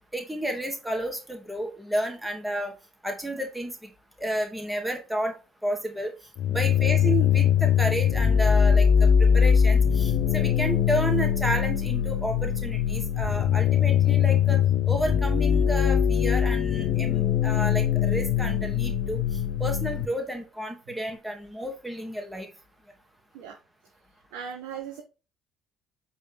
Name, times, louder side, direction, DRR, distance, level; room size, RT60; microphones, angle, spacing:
voice 1, 0.1-2.7 3.0-3.9 4.2-5.3 5.6-6.1 6.5-19.2 19.6-22.5, right 1 dB, 5° right, 2 dB, 2.3 m, -31 dB
sound 1, 6.4-20.0, left 8 dB, 55° left, 0.9 m, -22 dB
voice 2, 24.3-25.0, right 7 dB, 60° right, 4 dB, 1.0 m, -37 dB
8.0 x 4.0 x 3.6 m, 0.30 s
figure-of-eight pair, 55°, 0 cm